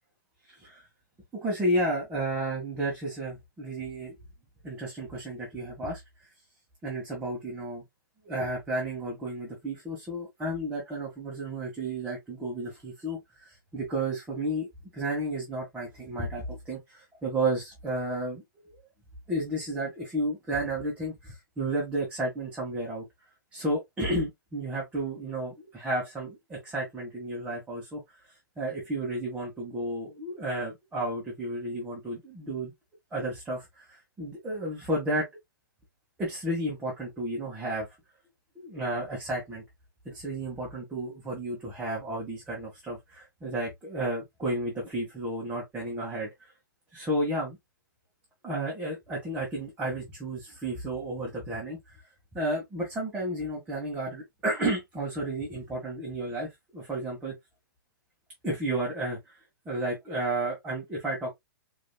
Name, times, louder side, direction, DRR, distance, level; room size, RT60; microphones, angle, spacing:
voice 1, 1.4-4.1 4.6-6.0 6.8-7.8 8.2-13.2 13.4-14.7 14.9-18.7 19.3-23.0 23.5-28.0 28.6-32.7 33.1-35.3 36.2-37.9 38.5-39.6 40.0-46.3 46.9-47.6 48.4-52.0 52.3-57.3 58.4-59.2 59.6-61.3, right 1 dB, 10° right, 1.6 m, -32 dB
5.0 x 3.1 x 2.3 m
hypercardioid pair, 145°, 11 cm